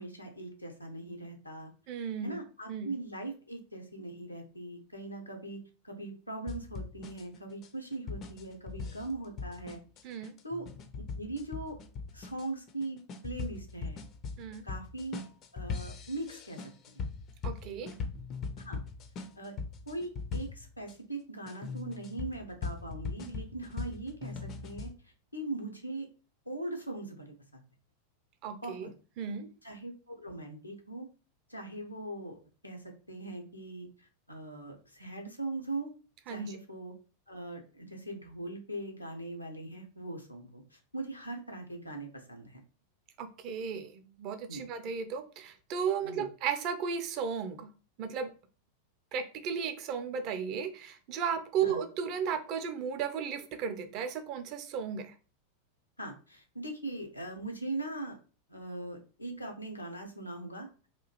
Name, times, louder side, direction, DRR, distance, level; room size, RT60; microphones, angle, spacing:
voice 1, 0.0-1.7 2.2-9.8 10.2-10.7 11.2-11.8 12.1-14.0 14.6-15.2 15.5-17.0 18.6-18.8 19.4-19.6 19.9-26.1 26.5-27.6 28.5-28.9 29.6-31.1 31.5-32.4 32.6-35.9 36.3-36.9 37.3-42.6 44.5-44.6 46.0-46.3 51.6-51.8 56.0-58.2 58.5-60.7, right 2 dB, 85° left, 2 dB, 0.6 m, -40 dB
voice 2, 1.9-2.4 2.7-2.9 10.0-10.3 14.4-14.6 17.4-17.9 28.4-28.9 29.2-29.5 36.3-36.6 43.2-47.7 48.0-48.3 49.1-55.1, right 7 dB, 40° right, 9 dB, 0.4 m, -35 dB
sound 1, 6.5-20.9 21.5-24.9, left 4 dB, 35° left, 0.4 m, -40 dB
2.9 x 2.4 x 2.8 m, 0.36 s
figure-of-eight pair, 90°, 0 cm